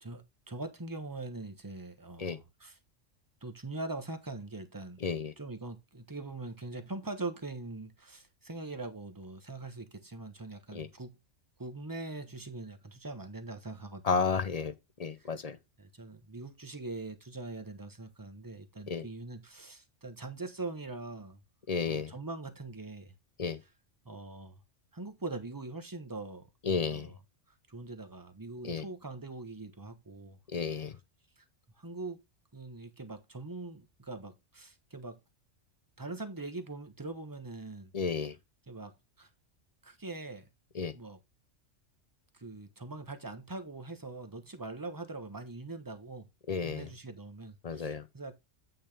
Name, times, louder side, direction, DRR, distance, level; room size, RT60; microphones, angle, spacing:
voice 1, 0.0-2.8 3.4-5.0 5.4-11.2 11.6-14.2 15.2-15.3 15.8-21.4 21.8-23.1 24.0-24.6 24.9-26.5 26.7-27.1 27.7-30.4 31.4-31.5 31.8-32.2 32.5-35.2 36.0-37.9 38.7-39.3 39.8-40.5 40.9-41.2 42.3-46.3 46.6-48.3, right 2 dB, 20° right, 1.0 m, -42 dB
voice 2, 5.0-5.3 10.7-10.9 14.0-14.7 15.0-15.6 18.9-19.1 21.7-22.1 23.4-23.6 26.6-27.1 28.6-28.8 30.5-31.0 37.9-38.4 40.7-40.9 46.5-46.9 47.6-48.1, left 5 dB, 40° left, 0.6 m, -32 dB
8.7 x 5.8 x 3.4 m
omnidirectional pair, 1.3 m